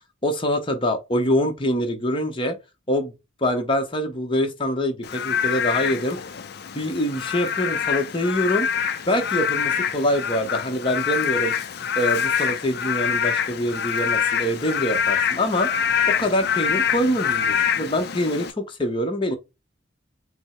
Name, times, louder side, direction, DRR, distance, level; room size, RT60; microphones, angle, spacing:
voice 1, 0.2-2.6 2.9-3.1 3.4-6.2 6.7-8.7 9.1-11.5 12.0-19.4, left 1 dB, 25° left, 0.9 m, -24 dB
Frog / Rain, 5.0-18.5, left 8 dB, 55° left, 0.4 m, -25 dB
5.2 x 2.1 x 4.3 m
head